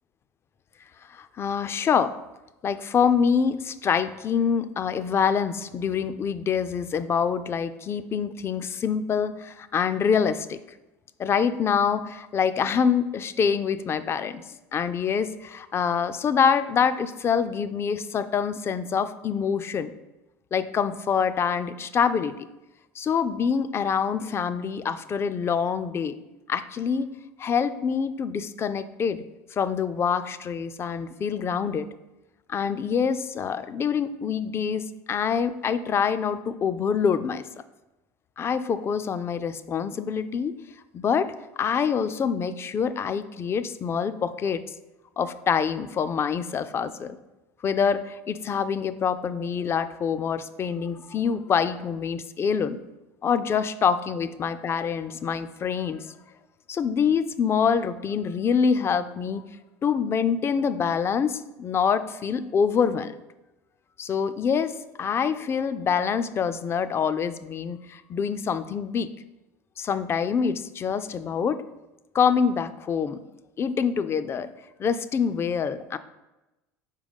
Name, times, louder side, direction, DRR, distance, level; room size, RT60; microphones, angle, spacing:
voice 1, 1.1-2.2 2.6-10.6 11.2-14.4 14.7-19.9 20.5-22.5 23.0-26.1 26.5-27.1 27.4-29.2 29.5-31.9 32.5-37.4 38.4-40.6 40.9-41.3 41.6-44.6 45.2-47.2 47.6-52.8 53.2-56.1 56.7-59.4 59.8-63.2 64.0-69.1 69.8-71.6 72.1-73.2 73.6-74.5 74.8-76.0, left 6 dB, 30° left, 13 dB, 0.4 m, -25 dB
4.7 x 3.7 x 5.3 m, 1.0 s
supercardioid pair, 95°, 8 cm